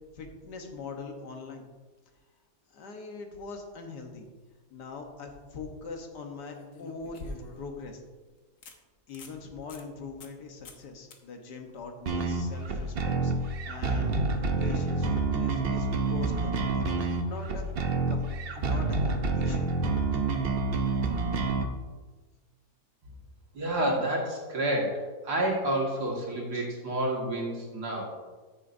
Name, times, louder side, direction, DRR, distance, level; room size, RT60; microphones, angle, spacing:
voice 1, 0.1-1.7 2.7-4.3 4.7-7.3 7.6-8.0 9.1-16.6 16.9-17.6 18.1-18.3 18.5-19.7 26.5-26.6, left 4 dB, 80° left, 3 dB, 1.7 m, -42 dB
sound 1, 5.0-5.1 6.5-7.8 8.2-8.3 8.6-8.8 9.1-9.4 9.7-9.8 10.2-10.4 10.6-10.8 11.1-11.2 14.3-14.4, left 2 dB, 55° left, 1.3 m, -45 dB
sound 2, 12.1-21.7, right 3 dB, 50° right, 0.7 m, -28 dB
voice 2, 23.5-28.1, right 1 dB, 70° right, -2 dB, 2.5 m, -29 dB
14.0 x 6.9 x 2.6 m, 1.3 s
omnidirectional pair, 1.8 m